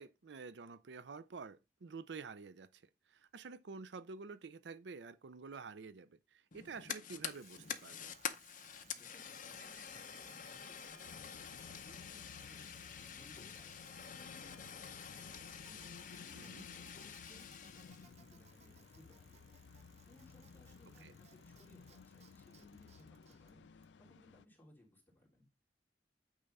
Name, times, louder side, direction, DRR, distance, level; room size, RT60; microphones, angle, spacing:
voice 1, 0.0-8.1 16.3-16.7 21.0-21.1, right 4 dB, 80° right, 0.5 m, -49 dB
Fire, 6.5-18.1, left 8 dB, 50° left, 0.7 m, -48 dB
Bicycle, 7.2-24.3, right 5 dB, 40° right, 0.8 m, -65 dB
voice 2, 8.9-15.2 15.7-25.5, left 1 dB, 10° left, 3.0 m, -65 dB
sound 1, 11.1-24.5, left 5 dB, 85° left, 0.4 m, -57 dB
8.8 x 3.5 x 5.4 m
head